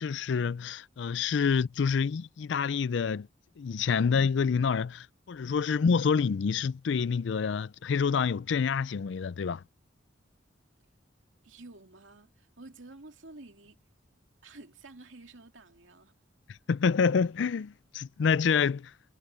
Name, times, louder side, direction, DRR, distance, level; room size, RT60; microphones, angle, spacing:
voice 1, 0.0-3.3 3.6-9.6 16.7-18.9, left 6 dB, 70° left, 0.4 m, -27 dB
voice 2, 11.4-13.8 14.4-16.2, right 2 dB, 85° right, 2.5 m, -50 dB
head